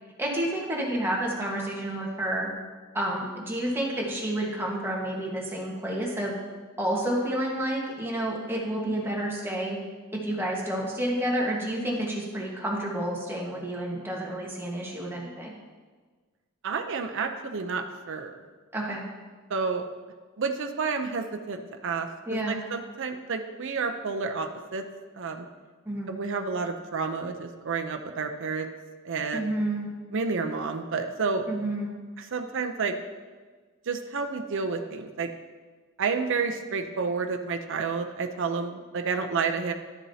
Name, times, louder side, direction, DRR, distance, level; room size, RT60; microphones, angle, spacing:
voice 1, 0.2-2.5 2.9-6.4 6.8-9.8 10.2-15.5 18.7-19.0 22.3-22.6 25.8-26.1 29.3-29.9 31.5-31.9, right 1 dB, 10° right, -3 dB, 1.5 m, -30 dB
voice 2, 16.6-18.3 19.5-19.9 20.4-24.8 25.1-25.5 26.1-28.7 29.0-29.5 30.1-31.5 32.2-32.9 33.9-35.3 36.0-39.7, right 4 dB, 60° right, 5 dB, 0.6 m, -30 dB
11.5 x 7.1 x 2.8 m, 1.4 s
head